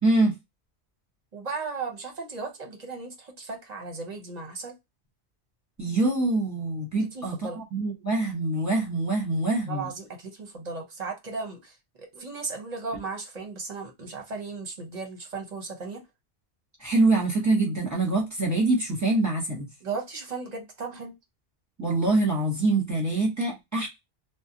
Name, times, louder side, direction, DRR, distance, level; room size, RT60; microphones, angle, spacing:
voice 1, 0.0-0.3 5.8-9.9 16.8-19.7 21.8-23.9, right 2 dB, 15° right, 0.9 m, -25 dB
voice 2, 1.3-4.7 7.1-7.6 9.7-16.0 19.8-21.1, right 4 dB, 45° right, 0.8 m, -36 dB
2.5 x 2.1 x 2.7 m
omnidirectional pair, 1.1 m